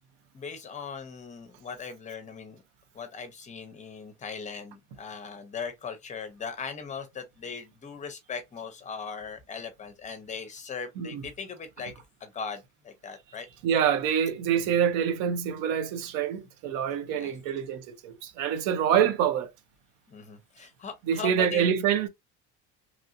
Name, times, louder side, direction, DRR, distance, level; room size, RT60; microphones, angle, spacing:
voice 1, 0.3-2.6 2.9-11.9 12.2-13.5 14.6-14.8 17.1-17.3 20.1-21.7, left 5 dB, 25° left, 0.7 m, -39 dB
voice 2, 13.6-19.5 21.1-22.1, right 8 dB, 85° right, 0.8 m, -26 dB
3.1 x 2.6 x 2.6 m
cardioid pair, 150°, 32 cm